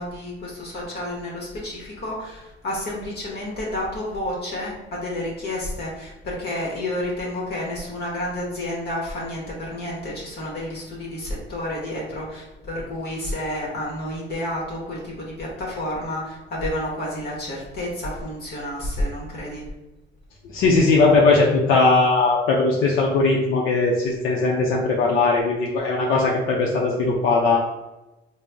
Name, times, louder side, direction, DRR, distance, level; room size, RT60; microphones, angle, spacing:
voice 1, 0.0-19.7, left 1 dB, 50° left, -4 dB, 1.0 m, -30 dB
voice 2, 20.5-27.6, left 3 dB, 80° left, -3 dB, 0.6 m, -19 dB
3.8 x 2.0 x 3.4 m, 1.0 s
cardioid pair, 125°, 21 cm